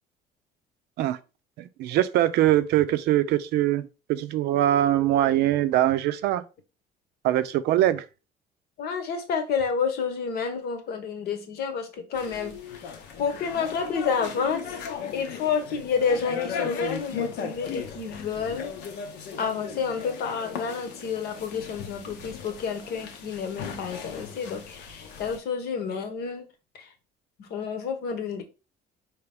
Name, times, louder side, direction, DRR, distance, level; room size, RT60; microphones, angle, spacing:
voice 1, 1.6-6.4 7.2-8.0, right 13 dB, 80° right, 0.5 m, -22 dB
voice 2, 8.8-18.7 19.4-26.5 26.7-26.9 27.4-28.4, left 6 dB, 70° left, 1.0 m, -30 dB
sound 1, 12.1-25.4, left 7 dB, 85° left, 0.9 m, -37 dB
4.6 x 3.0 x 3.4 m
cardioid pair, 110°, 17 cm